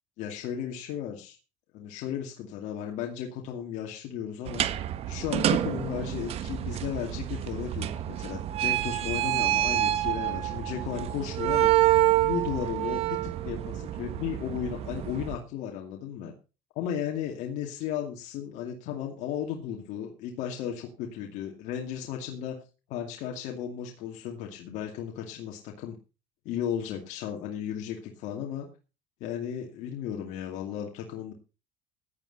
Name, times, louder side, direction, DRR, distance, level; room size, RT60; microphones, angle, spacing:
voice 1, 0.2-1.4 1.7-4.6 5.1-11.7 12.2-16.3 16.7-22.6 22.9-26.0 26.4-28.7 29.2-31.3, left 9 dB, 70° left, 1 dB, 2.4 m, -35 dB
sound 1, 4.5-15.4, right 13 dB, 55° right, 1.2 m, -28 dB
16.0 x 10.0 x 4.2 m, 0.32 s
cardioid pair, 120°, 13 cm